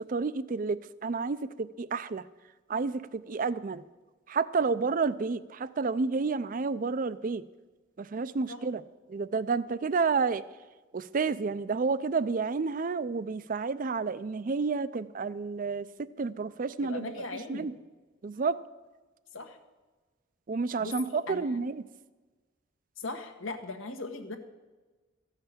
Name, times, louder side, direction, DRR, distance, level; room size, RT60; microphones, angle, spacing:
voice 1, 0.1-2.3 2.7-3.8 4.3-7.4 8.0-8.8 9.1-10.4 10.9-15.9 16.2-17.1 17.5-17.7 18.2-18.6 20.5-21.9, right 4 dB, 45° right, 16 dB, 0.4 m, -30 dB
voice 2, 16.8-17.7 19.3-19.6 20.8-21.6 23.0-24.4, left 3 dB, 80° left, 6 dB, 1.4 m, -39 dB
14.0 x 5.7 x 8.4 m, 1.2 s
head